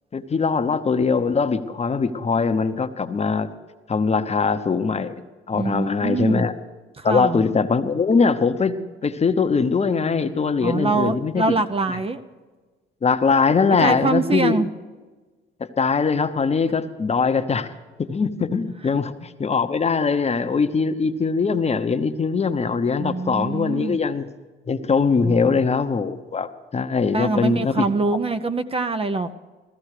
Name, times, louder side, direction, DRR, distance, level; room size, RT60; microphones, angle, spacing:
voice 1, 0.1-3.5 3.9-5.2 5.5-6.5 7.0-8.8 9.0-11.4 11.9-12.0 13.0-14.6 15.6-17.7 18.0-24.2 24.7-28.2, left 5 dB, 35° left, 8 dB, 0.9 m, -21 dB
voice 2, 5.5-6.5 7.0-7.4 10.6-12.2 13.8-14.7 23.0-24.0 25.2-25.6 27.1-29.3, right 3 dB, 30° right, 10 dB, 0.7 m, -24 dB
15.0 x 14.5 x 4.9 m, 1.3 s
cardioid pair, 90°, 20 cm